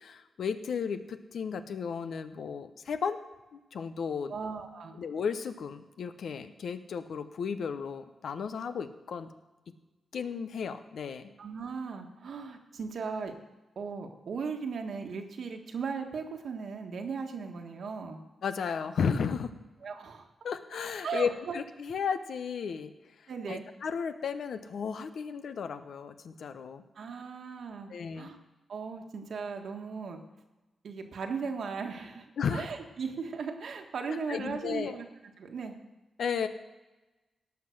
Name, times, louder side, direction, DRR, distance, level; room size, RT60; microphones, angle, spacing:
voice 1, 0.0-3.2 3.5-4.4 5.0-9.3 10.1-11.3 18.4-19.5 20.4-22.9 23.5-26.8 27.9-28.3 32.4-32.7 34.1-35.0 36.2-36.5, left 6 dB, 75° left, 10 dB, 0.8 m, -34 dB
voice 2, 4.3-5.0 11.4-13.3 13.7-18.2 19.8-20.3 21.0-21.6 23.3-23.6 26.9-28.4 28.7-30.2 30.8-35.1 35.4-35.8, right 5 dB, 70° right, 4 dB, 1.5 m, -37 dB
17.5 x 5.9 x 6.5 m, 1.1 s
cardioid pair, 100°, 0 cm